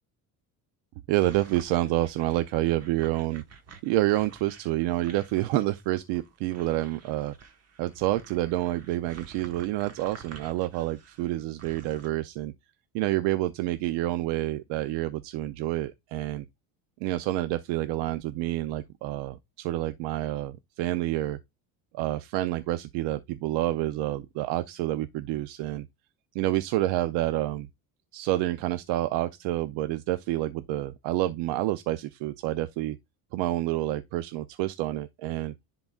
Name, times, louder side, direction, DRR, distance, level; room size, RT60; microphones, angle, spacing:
voice 1, 1.1-3.4 3.8-7.3 7.8-12.5 12.9-16.4 17.0-21.4 21.9-25.9 26.3-27.7 28.1-33.0 33.3-35.5, right 15 dB, 75° right, 0.6 m, -28 dB
sound 1, 1.2-12.1, right 5 dB, 35° right, 1.2 m, -51 dB
10.5 x 3.9 x 2.4 m
cardioid pair, 120°, 43 cm